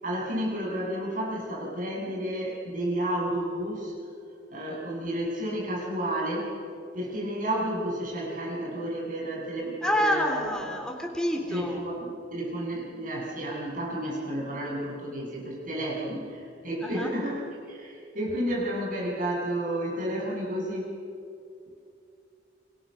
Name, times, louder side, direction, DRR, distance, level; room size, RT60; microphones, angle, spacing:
voice 1, 0.0-3.9 4.5-6.6 6.9-10.5 11.5-17.4 17.7-20.9, right 1 dB, 45° right, -2 dB, 7.9 m, -31 dB
voice 2, 9.8-11.8 16.8-17.1, left 1 dB, 5° left, 1 dB, 3.8 m, -28 dB
29.0 x 25.5 x 6.7 m, 2.5 s
head